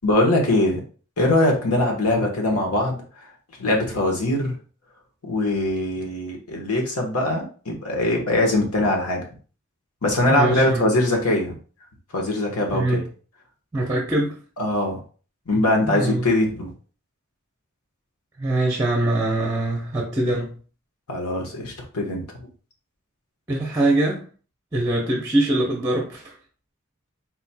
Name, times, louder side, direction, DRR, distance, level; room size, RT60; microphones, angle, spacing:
voice 1, 0.0-0.8 1.2-3.0 3.6-4.6 5.2-9.2 10.0-11.5 12.1-13.0 14.6-15.0 15.5-16.7 21.1-22.3, left 1 dB, 90° left, 1 dB, 1.3 m, -22 dB
voice 2, 10.3-10.8 12.7-13.0 13.7-14.4 15.8-16.3 18.4-20.5 23.5-24.2 24.7-26.3, right 2 dB, 15° right, 0 dB, 0.7 m, -23 dB
4.3 x 4.2 x 2.3 m, 0.40 s
head